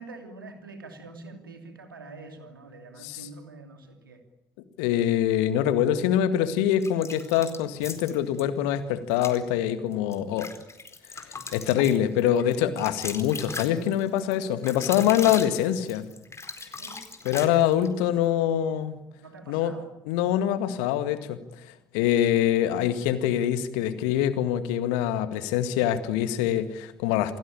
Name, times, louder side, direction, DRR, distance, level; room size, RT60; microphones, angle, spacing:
voice 1, 0.0-4.2 16.7-17.0 19.2-19.9, right 3 dB, 85° right, 5 dB, 2.9 m, -45 dB
voice 2, 4.8-10.5 11.3-16.1 17.2-19.0 19.5-19.7 20.1-21.4 21.9-27.4, left 11 dB, 70° left, 11 dB, 2.0 m, -24 dB
sound 1, 6.8-8.4 9.1-9.4 9.9-17.9, left 3 dB, 25° left, 4.4 m, -38 dB
28.5 x 19.0 x 8.8 m, 0.89 s
figure-of-eight pair, 45°, 11 cm